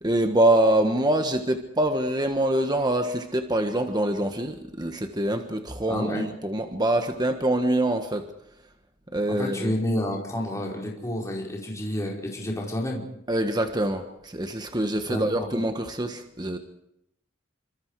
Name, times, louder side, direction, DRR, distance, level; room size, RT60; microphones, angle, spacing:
voice 1, 0.0-8.2 9.1-9.7 13.3-16.6, right 1 dB, 20° right, 6 dB, 1.6 m, -25 dB
voice 2, 5.9-6.2 9.3-13.0 15.1-15.5, left 1 dB, 15° left, -2 dB, 4.8 m, -29 dB
28.0 x 25.5 x 4.9 m, 0.77 s
head